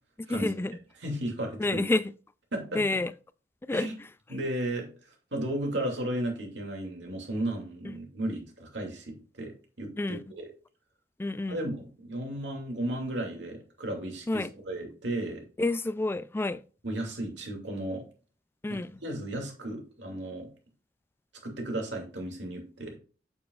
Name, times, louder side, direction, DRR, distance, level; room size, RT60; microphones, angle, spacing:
voice 1, 0.3-0.8 1.6-2.0 2.7-3.1 3.7-3.9 7.9-8.0 10.0-10.2 11.2-11.6 14.3-14.5 15.6-16.6 18.6-18.9, left 2 dB, 15° left, 0.3 m, -28 dB
voice 2, 1.0-1.8 2.5-3.0 3.7-4.0 4.3-4.9 5.3-10.5 11.5-15.4 16.8-18.0 18.7-20.5 21.4-23.0, right 1 dB, 75° right, 2.5 m, -34 dB
8.5 x 7.0 x 2.4 m
head